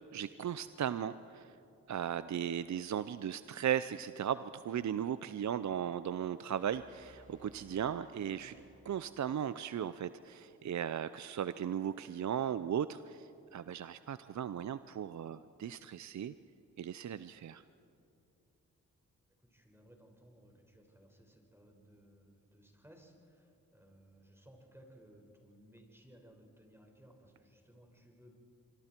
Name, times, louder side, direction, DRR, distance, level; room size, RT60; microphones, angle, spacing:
voice 1, 0.1-1.6 1.9-8.5 8.8-16.3 16.8-17.6, right 9 dB, 55° right, 14 dB, 0.6 m, -37 dB
sound 1, 6.6-9.5, right 2 dB, 25° right, 5.8 m, -60 dB
voice 2, 19.5-28.3, equal, 5° right, 2 dB, 5.2 m, -60 dB
25.5 x 24.5 x 4.5 m, 2.6 s
supercardioid pair, 45°, 35 cm